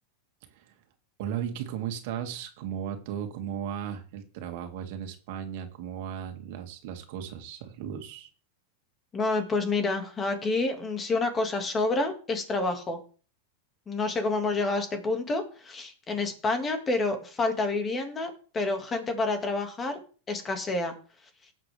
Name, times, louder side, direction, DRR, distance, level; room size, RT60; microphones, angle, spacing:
voice 1, 1.2-8.3, right 9 dB, 60° right, 5 dB, 2.3 m, -36 dB
voice 2, 9.1-13.0 13.9-20.0 20.3-20.9, left 3 dB, 20° left, 6 dB, 2.1 m, -28 dB
18.5 x 7.6 x 3.5 m, 0.39 s
supercardioid pair, 140°, 0 cm